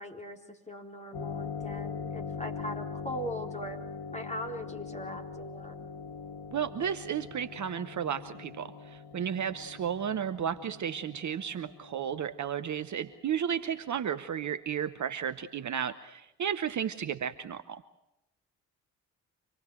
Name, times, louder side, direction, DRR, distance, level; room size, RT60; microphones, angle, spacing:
voice 1, 0.0-3.8 4.1-5.7, equal, 15° left, 2 dB, 4.2 m, -40 dB
sound 1, 1.1-14.3, left 5 dB, 60° left, 1.7 m, -42 dB
voice 2, 6.5-17.8, right 8 dB, 40° right, 12 dB, 1.0 m, -33 dB
25.5 x 19.5 x 7.9 m, 0.89 s
figure-of-eight pair, 40°, 46 cm